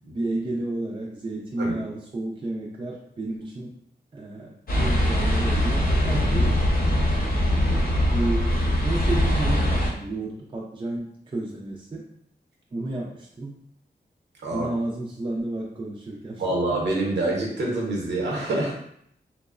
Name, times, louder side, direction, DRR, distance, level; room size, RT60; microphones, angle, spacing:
voice 1, 0.1-3.7 4.1-6.6 7.3-8.5 8.8-12.1 12.7-13.5 14.5-16.4, right 2 dB, 30° right, -2 dB, 0.4 m, -31 dB
sound 1, 4.7-9.9, equal, 55° left, 0.7 m, -22 dB
voice 2, 14.4-14.7 16.4-18.7, right 2 dB, 80° right, -2 dB, 0.8 m, -26 dB
2.9 x 2.0 x 2.4 m, 0.70 s
wide cardioid pair, 80°, 18 cm